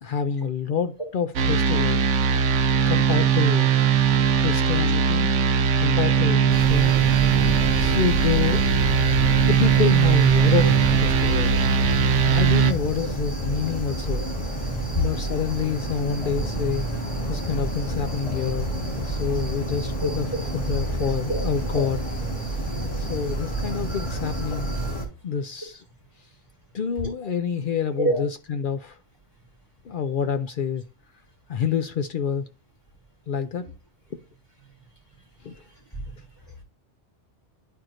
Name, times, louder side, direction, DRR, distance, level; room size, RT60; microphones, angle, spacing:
voice 1, 0.0-2.0 2.9-3.7 4.4-5.4 5.8-7.0 7.3-8.7 9.4-11.6 12.2-14.2 14.9-16.9 17.3-18.7 19.0-20.3 20.5-22.0 22.9-24.9 25.2-25.8 26.7-29.0 29.8-30.8 31.5-32.5 33.3-33.7 35.4-35.6, left 7 dB, 60° left, 0.6 m, -27 dB
sound 1, 1.4-12.7, right 7 dB, 80° right, 1.0 m, -20 dB
sound 2, 6.5-25.1, right 1 dB, 5° left, 2.7 m, -29 dB
voice 2, 20.7-21.8 22.4-22.5 23.3-23.4 23.9-24.0 27.0-27.3 28.0-28.2 33.6-33.7 35.9-36.2 36.5-36.6, equal, 25° left, 2.7 m, -29 dB
10.5 x 4.6 x 2.5 m
omnidirectional pair, 1.2 m